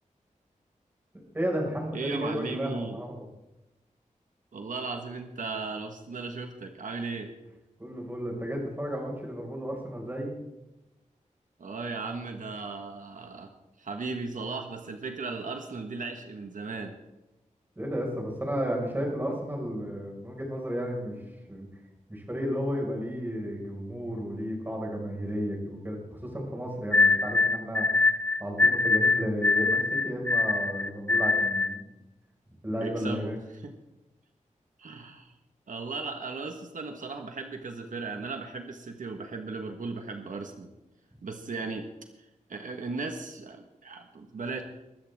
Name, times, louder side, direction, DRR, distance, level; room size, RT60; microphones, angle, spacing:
voice 1, 1.3-3.1 7.8-10.3 17.8-21.1 21.5-21.7 22.1-27.9 28.4-31.8 32.6-33.4, equal, 15° right, -1 dB, 5.4 m, -33 dB
voice 2, 1.9-3.0 4.5-7.3 11.6-13.5 13.8-16.9 32.8-33.7 34.8-35.4 35.7-40.7 41.2-41.9 42.5-44.6, right 4 dB, 80° right, 4 dB, 1.5 m, -36 dB
sound 1, 26.9-31.8, left 3 dB, 10° left, 0.5 m, -24 dB
23.0 x 13.5 x 3.6 m, 0.97 s
wide cardioid pair, 120°, 13 cm